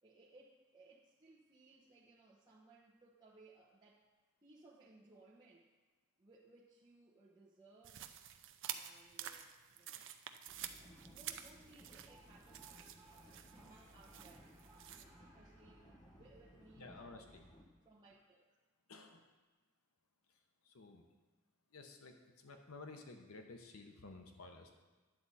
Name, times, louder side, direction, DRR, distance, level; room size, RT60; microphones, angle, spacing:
voice 1, 0.0-4.0 4.4-5.7 6.2-8.1 8.7-10.0 10.8-13.0 13.3-15.9 16.2-17.3 17.8-18.4, right 2 dB, 20° right, -6 dB, 0.9 m, -64 dB
sound 1, 7.8-15.0, right 10 dB, 60° right, 0.5 m, -50 dB
sound 2, 10.5-17.6, equal, 20° left, 1.0 m, -61 dB
sound 3, 11.9-17.3, right 2 dB, 5° right, 3.1 m, -66 dB
voice 2, 16.8-17.5 18.9-19.2 20.3-21.0 21.7-24.7, left 3 dB, 85° left, 4 dB, 0.9 m, -54 dB
10.5 x 7.6 x 4.2 m, 1.3 s
head